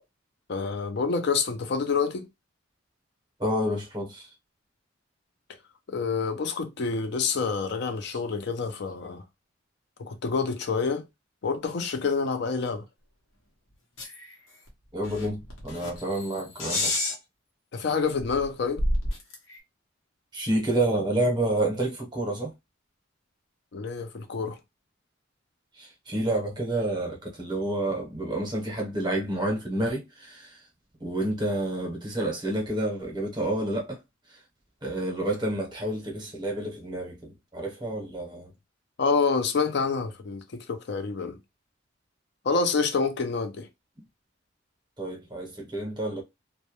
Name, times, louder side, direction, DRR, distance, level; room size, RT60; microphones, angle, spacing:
voice 1, 0.5-2.3 5.9-9.2 10.0-11.0 11.4-12.8 17.7-18.8 23.7-24.6 39.0-40.4 40.7-41.4 42.4-43.7, left 5 dB, 55° left, 0.4 m, -27 dB
voice 2, 3.4-4.3 8.1-8.2 14.9-16.9 20.3-22.5 25.8-30.5 31.0-34.0 34.8-38.5 45.0-46.2, right 1 dB, 20° right, 0.7 m, -29 dB
sound 1, 14.0-14.3 14.7-14.8 15.0-17.2 17.9-18.0 18.2-19.6, left 1 dB, 80° left, 0.8 m, -30 dB
2.2 x 2.0 x 2.9 m
head